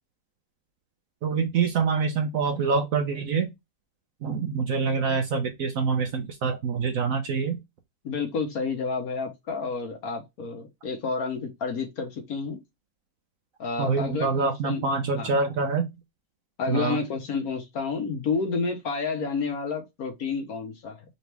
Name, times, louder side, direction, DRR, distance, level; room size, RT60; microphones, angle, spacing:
voice 1, 1.2-3.5 4.2-7.6 13.8-15.9 16.7-17.0, right 5 dB, 60° right, 0.9 m, -25 dB
voice 2, 8.0-12.6 13.6-14.9 15.1-15.4 16.6-21.0, left 4 dB, 60° left, 1.3 m, -30 dB
4.0 x 3.0 x 3.2 m
omnidirectional pair, 1.9 m